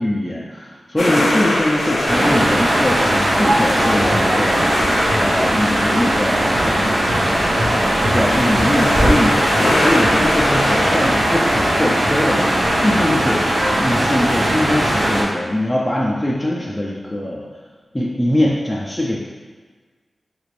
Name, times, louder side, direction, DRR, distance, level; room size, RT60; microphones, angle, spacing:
voice 1, 0.0-4.6 5.2-7.0 7.2-7.6 8.1-12.5 12.8-13.4 13.8-17.4 17.9-19.2, left 1 dB, 10° left, -5 dB, 0.4 m, -22 dB
sound 1, 1.0-11.4, left 1 dB, 70° left, 0.5 m, -24 dB
sound 2, 2.1-15.2, right 1 dB, 65° right, 0.7 m, -18 dB
3.3 x 2.5 x 3.2 m, 1.4 s
wide cardioid pair, 75°, 0 cm